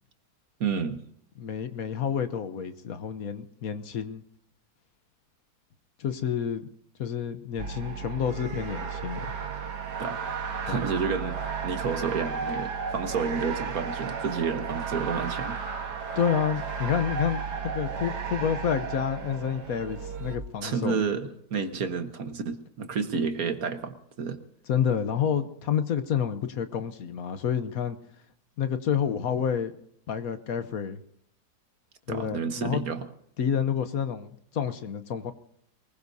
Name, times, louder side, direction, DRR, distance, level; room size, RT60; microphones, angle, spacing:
voice 1, 0.6-1.0 10.0-10.2 10.6-15.6 20.6-24.4 32.1-33.1, right 5 dB, 60° right, 8 dB, 1.6 m, -30 dB
voice 2, 1.4-4.2 6.0-6.7 7.0-9.3 10.7-10.8 16.2-21.0 24.7-28.0 28.6-29.7 30.1-31.0 32.1-32.8 33.4-35.3, left 8 dB, 65° left, 10 dB, 1.3 m, -29 dB
sound 1, 7.6-20.4, right 6 dB, 85° right, 2.1 m, -34 dB
23.0 x 20.5 x 2.7 m, 0.71 s
omnidirectional pair, 1.7 m